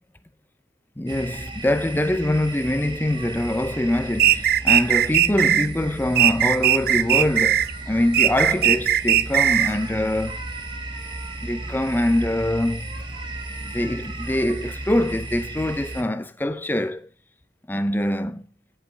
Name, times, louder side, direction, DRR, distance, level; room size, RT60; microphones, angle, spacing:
voice 1, 1.0-10.4 11.4-13.0 13.6-17.1 17.7-18.5, left 1 dB, 10° left, 0.5 m, -24 dB
sound 1, 1.1-16.0, right 2 dB, 25° right, 1.6 m, -35 dB
sound 2, 4.2-5.7 6.2-7.7 8.1-9.8, right 11 dB, 50° right, 0.4 m, -18 dB
10.0 x 5.7 x 8.1 m
head